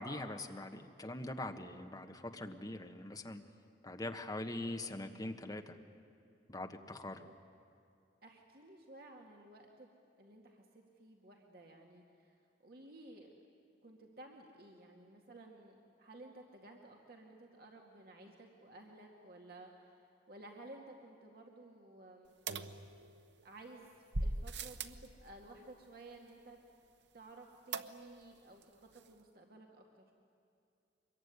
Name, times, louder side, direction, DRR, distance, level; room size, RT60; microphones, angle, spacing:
voice 1, 0.0-3.4 3.8-5.8 6.5-7.3, left 1 dB, 20° left, 5 dB, 1.4 m, -43 dB
voice 2, 8.2-9.9 10.2-12.4 12.6-13.3 13.8-19.7 20.0-22.3 23.4-23.9 24.2-26.6 27.1-29.8, right 2 dB, 60° right, 1 dB, 2.2 m, -55 dB
sound 1, 22.5-23.4 24.1-25.1 27.7-28.3 28.6-28.7 29.0-29.1, right 2 dB, 85° right, 1.0 m, -40 dB
25.0 x 22.5 x 9.7 m, 2.6 s
head